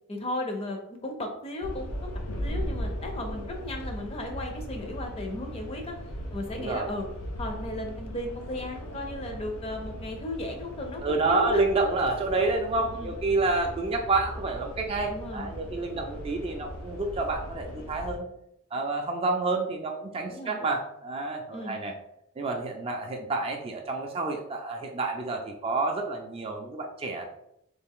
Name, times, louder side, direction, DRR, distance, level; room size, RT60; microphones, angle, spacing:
voice 1, 0.1-2.1 2.4-6.0 6.3-7.1 7.4-11.6 12.8-13.1 15.1-15.5 20.3-20.6 21.5-21.8, left 1 dB, 30° left, 3 dB, 0.5 m, -35 dB
sound 1, 1.6-18.2, equal, 85° left, 0.6 m, -38 dB
voice 2, 6.5-6.9 11.0-18.3 18.7-21.9 22.4-27.4, right 3 dB, 25° right, 3 dB, 0.3 m, -29 dB
3.3 x 2.4 x 3.5 m, 0.79 s
head